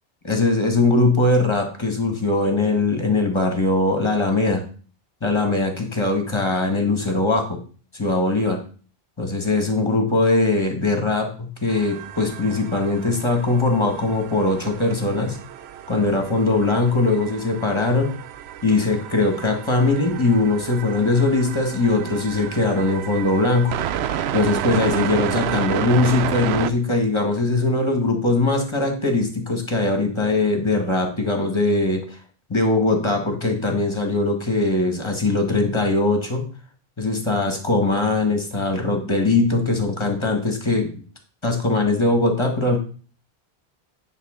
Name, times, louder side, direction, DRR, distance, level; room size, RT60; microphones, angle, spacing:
voice 1, 0.2-4.6 5.2-7.6 7.9-8.6 9.2-15.4 15.9-18.1 18.6-23.8 24.3-32.2 32.5-36.4 37.0-40.9 41.4-42.8, left 2 dB, 25° left, 4 dB, 1.9 m, -21 dB
sound 1, 11.7-26.7, right 10 dB, 80° right, 0.8 m, -31 dB
9.9 x 3.9 x 6.5 m, 0.39 s
omnidirectional pair, 1.1 m